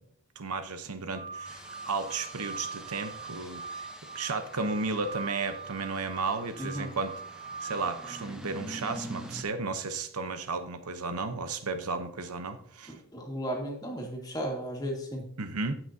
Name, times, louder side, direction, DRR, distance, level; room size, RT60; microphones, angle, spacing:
voice 1, 0.4-3.9 4.1-7.2 7.6-13.0 15.4-15.7, right 4 dB, 90° right, 9 dB, 1.0 m, -34 dB
sound 1, 1.1-8.2, right 4 dB, 30° right, 0.9 m, -42 dB
sound 2, 1.4-9.4, equal, 5° right, 0.8 m, -46 dB
voice 2, 6.6-6.9 12.9-15.2, equal, 15° left, 0 dB, 1.9 m, -35 dB
17.0 x 6.0 x 2.8 m, 0.67 s
head